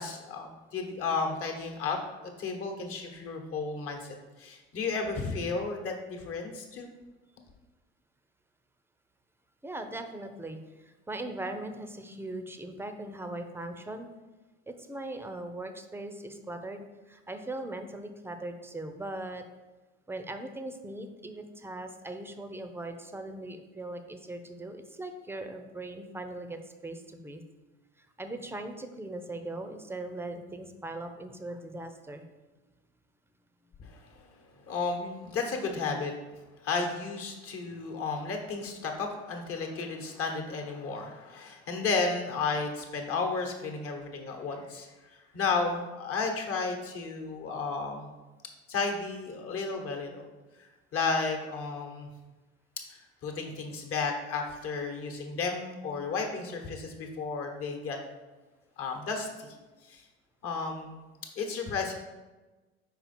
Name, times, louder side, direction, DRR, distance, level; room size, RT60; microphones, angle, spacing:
voice 1, 0.0-6.9 33.8-34.2 34.7-36.1 36.6-48.1 48.7-50.3 50.5-52.1 52.9-58.0 58.8-59.6 59.8-60.0 60.4-61.0 61.4-61.9, left 4 dB, 45° left, 3 dB, 1.2 m, -33 dB
voice 2, 9.6-14.1 14.7-19.4 20.1-27.4 28.0-32.3, right 2 dB, 10° right, 7 dB, 0.6 m, -40 dB
5.0 x 4.5 x 4.3 m, 1.2 s
hypercardioid pair, 75°, 31 cm